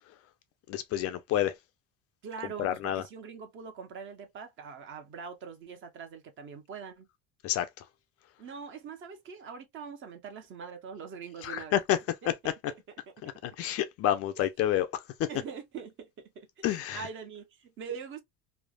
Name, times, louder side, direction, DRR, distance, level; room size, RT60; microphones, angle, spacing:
voice 1, 0.7-1.5 2.6-3.0 7.4-7.8 11.4-12.0 13.2-15.3 16.6-17.1, left 11 dB, 45° left, 0.4 m, -29 dB
voice 2, 2.2-7.1 8.4-11.8 12.2-12.8 13.1-13.2 14.4-14.5 15.3-18.2, right 6 dB, 40° right, 0.7 m, -43 dB
3.2 x 2.0 x 2.3 m
cardioid pair, 160°, 33 cm